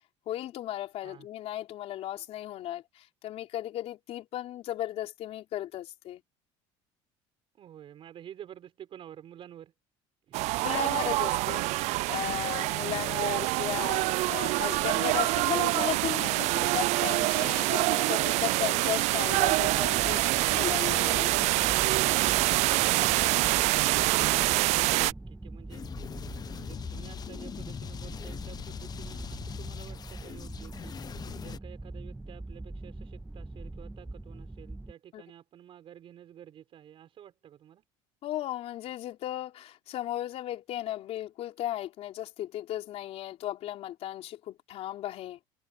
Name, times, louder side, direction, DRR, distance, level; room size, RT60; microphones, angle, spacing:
voice 1, 0.3-6.2 10.6-21.4 35.1-35.2 38.2-45.4, left 13 dB, 60° left, 3.8 m, -36 dB
voice 2, 7.5-9.7 10.3-10.5 22.6-25.8 26.4-37.8, right 10 dB, 50° right, 5.4 m, -50 dB
sound 1, 10.3-25.1, right 21 dB, 70° right, 0.4 m, -26 dB
sound 2, 19.3-34.9, right 2 dB, 10° right, 1.4 m, -43 dB
sound 3, 25.7-31.6, left 8 dB, 35° left, 1.0 m, -41 dB
cardioid pair, 115°, 12 cm